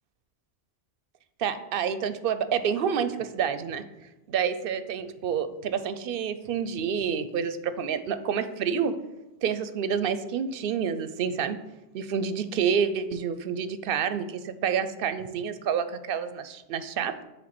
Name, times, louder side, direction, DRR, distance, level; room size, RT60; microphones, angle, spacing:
voice 1, 1.4-3.8 4.3-8.9 9.4-11.6 11.9-17.2, right 7 dB, 65° right, 11 dB, 0.7 m, -28 dB
7.7 x 3.2 x 5.9 m, 0.98 s
omnidirectional pair, 1.1 m